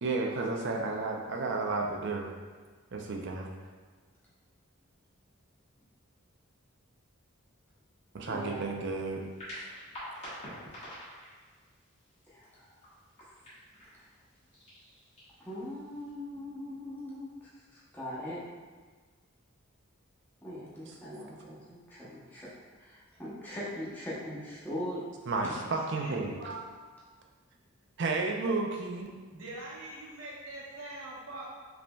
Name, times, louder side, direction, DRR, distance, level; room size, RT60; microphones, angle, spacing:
voice 1, 0.0-2.3 2.9-3.5 8.1-9.2 9.5-9.7 25.3-26.5 28.0-29.1, right 3 dB, 50° right, 1 dB, 0.5 m, -32 dB
voice 2, 8.3-8.8 12.3-12.7 15.4-18.4 20.4-22.5 22.8-25.1, left 1 dB, 10° left, -9 dB, 0.9 m, -41 dB
sound 1, 9.2-16.1, equal, 30° left, 1.4 m, -48 dB
voice 3, 25.9-26.7 29.3-31.5, right 2 dB, 65° right, -5 dB, 0.9 m, -43 dB
5.0 x 3.2 x 2.3 m, 1.4 s
head